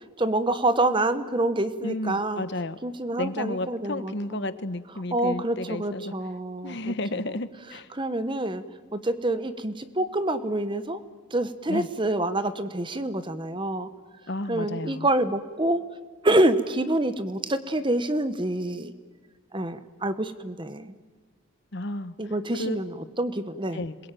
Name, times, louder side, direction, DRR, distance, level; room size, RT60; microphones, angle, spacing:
voice 1, 0.2-2.5 2.8-4.5 5.1-7.4 7.9-8.6 8.9-11.0 11.3-13.9 14.5-15.8 16.2-19.0 19.5-20.9 22.2-23.8, right 1 dB, 25° right, 11 dB, 1.1 m, -27 dB
voice 2, 1.8-2.8 3.2-6.1 6.6-7.9 11.7-11.9 14.3-15.1 21.7-22.1 22.6-22.8 23.7-24.0, left 2 dB, 55° left, 13 dB, 1.1 m, -32 dB
26.5 x 21.5 x 9.1 m, 1.5 s
head